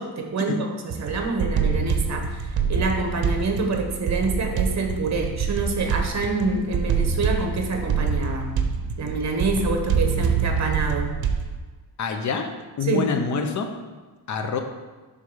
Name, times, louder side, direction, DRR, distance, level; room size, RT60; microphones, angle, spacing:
voice 1, 0.0-8.6 9.0-11.2 12.8-13.1, right 3 dB, 45° right, 3 dB, 1.0 m, -26 dB
sound 1, 0.9-11.6, right 6 dB, 70° right, 0.7 m, -26 dB
voice 2, 12.0-12.5 12.8-13.7 14.3-14.6, left 5 dB, 50° left, 5 dB, 0.7 m, -26 dB
6.2 x 3.8 x 5.5 m, 1.3 s
wide cardioid pair, 170°, 38 cm